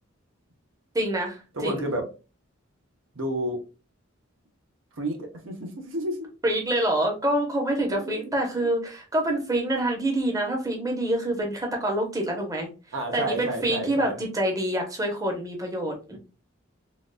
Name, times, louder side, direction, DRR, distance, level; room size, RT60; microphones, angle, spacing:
voice 1, 0.9-1.8 6.4-12.7 13.1-16.2, right 1 dB, 15° right, 1 dB, 0.8 m, -26 dB
voice 2, 1.5-2.1 3.1-3.6 5.0-6.3 7.8-8.7 12.9-14.2 16.1-16.2, right 1 dB, 75° right, 3 dB, 0.8 m, -31 dB
3.8 x 2.5 x 2.2 m, 0.32 s
head